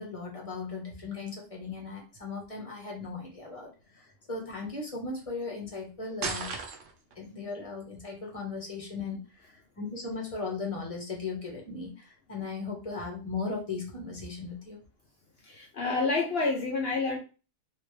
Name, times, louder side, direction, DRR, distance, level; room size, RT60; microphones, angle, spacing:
voice 1, 0.0-6.5 7.2-14.8, left 4 dB, 25° left, -1 dB, 0.9 m, -37 dB
sound 1, 6.2-7.2, right 4 dB, 70° right, 0.5 m, -34 dB
voice 2, 15.4-17.2, left 3 dB, 70° left, 0 dB, 0.5 m, -28 dB
3.2 x 2.9 x 3.1 m, 0.34 s
omnidirectional pair, 1.7 m